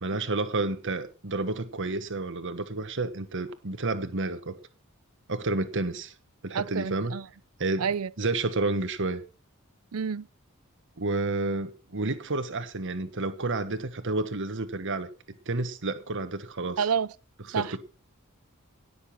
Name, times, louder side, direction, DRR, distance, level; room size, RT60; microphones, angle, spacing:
voice 1, 0.0-4.5 5.3-6.1 6.4-7.1 7.6-9.2 11.0-15.1 15.5-16.9 17.4-17.8, right 2 dB, 60° right, 1.4 m, -30 dB
voice 2, 6.5-7.2 7.8-8.1 9.9-10.2 16.8-17.1 17.5-17.8, right 6 dB, 90° right, 0.6 m, -28 dB
17.5 x 7.0 x 5.9 m
head